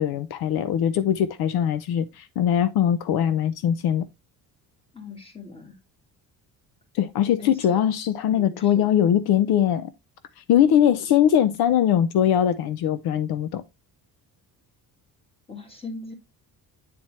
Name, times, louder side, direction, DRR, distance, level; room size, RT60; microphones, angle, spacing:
voice 1, 0.0-4.1 6.9-9.9 10.4-13.6, left 10 dB, 70° left, 0.6 m, -21 dB
voice 2, 4.9-5.8 7.4-7.8 8.3-8.9 15.5-16.1, left 3 dB, 15° left, 1.7 m, -39 dB
8.5 x 4.3 x 3.1 m
cardioid pair, 145°, 39 cm